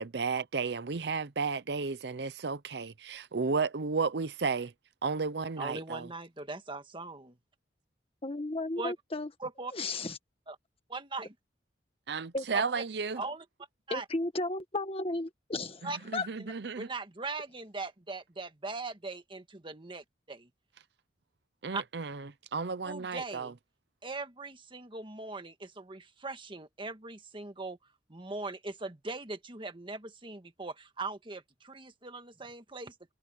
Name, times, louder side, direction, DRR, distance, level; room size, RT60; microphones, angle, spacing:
voice 1, 0.0-4.7 5.0-6.1 12.1-13.2 15.8-16.9 21.6-23.5, right 4 dB, 70° right, 0.7 m, -33 dB
voice 2, 5.6-7.4 8.8-8.9 9.4-9.7 10.9-11.3 12.5-12.8 13.2-13.4 13.9-14.0 15.8-16.0 16.4-16.5 16.8-20.5 21.7-21.8 22.8-23.5 24.0-27.8 28.1-33.1, right 3 dB, 30° right, 1.7 m, -40 dB
voice 3, 8.2-9.3 9.7-10.2 12.3-12.5 13.9-15.9 16.1-16.3, left 2 dB, 35° left, 1.7 m, -34 dB
head